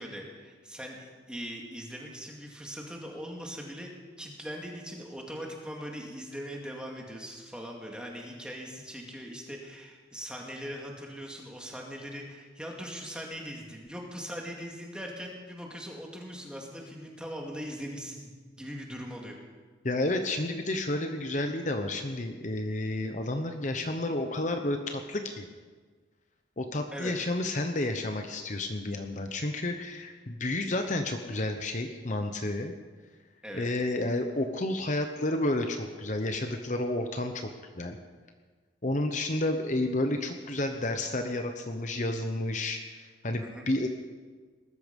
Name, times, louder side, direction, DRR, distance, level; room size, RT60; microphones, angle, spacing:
voice 1, 0.0-19.4 26.9-27.1 33.4-33.7 43.4-43.7, equal, 5° right, 0 dB, 2.3 m, -40 dB
voice 2, 19.8-25.4 26.6-32.7 33.5-37.5 37.8-38.0 38.8-43.9, left 1 dB, 40° left, 5 dB, 0.9 m, -31 dB
19.5 x 13.5 x 5.4 m, 1.5 s
head